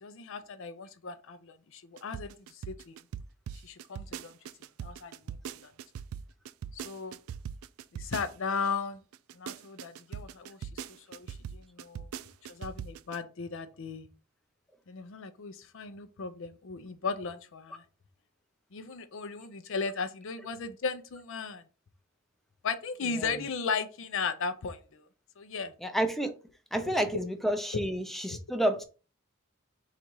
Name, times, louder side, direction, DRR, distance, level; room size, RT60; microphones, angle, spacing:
voice 1, 0.0-3.0 3.6-4.4 4.8-5.7 6.7-7.2 7.9-9.0 9.3-12.1 12.5-14.1 14.9-17.8 18.7-21.6 22.6-25.1 25.4-25.7 26.7-27.3 28.3-28.4, left 5 dB, 70° left, 0.5 m, -36 dB
sound 1, 2.0-8.7 9.1-13.2, right 8 dB, 85° right, 0.3 m, -40 dB
voice 2, 25.8-26.3 26.7-28.8, right 1 dB, ahead, 0.5 m, -30 dB
4.1 x 2.4 x 4.5 m
head